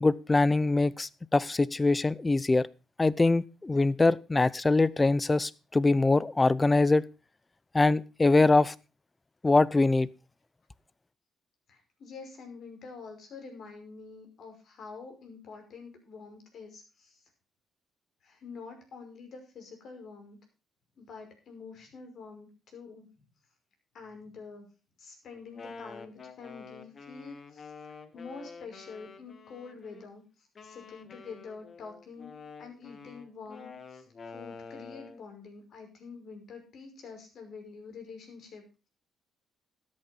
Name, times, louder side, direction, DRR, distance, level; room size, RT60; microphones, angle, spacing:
voice 1, 0.0-2.7 3.0-7.0 7.7-8.7 9.4-10.1, left 3 dB, 20° left, 0.7 m, -23 dB
voice 2, 11.7-17.2 18.2-20.4 21.0-23.1 23.9-24.7 25.0-27.7 28.1-32.3 32.6-38.6, left 5 dB, 65° left, 5.6 m, -47 dB
Wind instrument woodwind instrument, 25.3-30.1 30.5-35.3, left 4 dB, 45° left, 1.5 m, -48 dB
13.0 x 8.5 x 5.3 m
cardioid pair, 90°, 0 cm